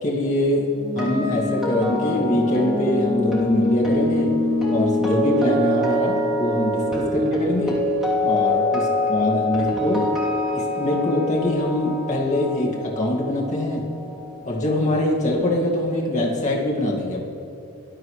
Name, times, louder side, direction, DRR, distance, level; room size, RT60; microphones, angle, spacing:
voice 1, 0.0-4.4 4.7-7.8 8.2-10.1 10.5-13.9 14.4-17.2, left 1 dB, 35° left, -3 dB, 2.1 m, -23 dB
sound 1, 0.8-14.8 15.1-15.4, left 1 dB, ahead, 3.1 m, -24 dB
20.0 x 12.5 x 3.2 m, 2.6 s
head